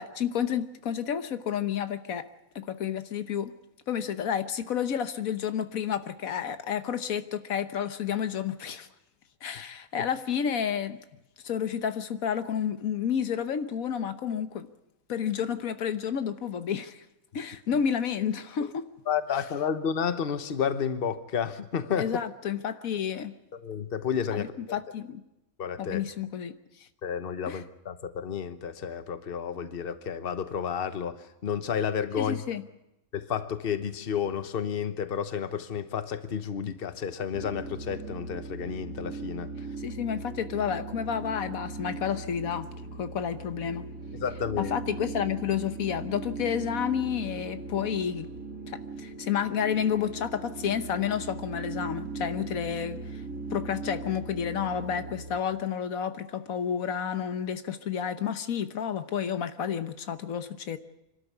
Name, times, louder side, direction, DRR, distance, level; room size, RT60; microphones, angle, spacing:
voice 1, 0.0-2.3 2.5-3.5 3.9-8.9 9.4-11.0 11.4-14.7 15.1-17.0 17.3-18.8 22.0-23.3 24.3-25.2 25.8-26.5 26.8-26.9 27.5-27.6 32.2-32.6 39.8-42.7 43.0-43.9 44.6-48.3 48.7-53.2 53.5-60.8, left 8 dB, 80° left, 10 dB, 1.4 m, -30 dB
voice 2, 19.1-22.1 23.6-24.8 25.6-26.0 27.0-32.4 33.1-39.5 44.2-44.8, left 7 dB, 45° left, 11 dB, 1.2 m, -31 dB
sound 1, 37.3-55.4, right 3 dB, 85° right, 2.2 m, -39 dB
25.5 x 12.5 x 9.7 m, 0.92 s
omnidirectional pair, 1.4 m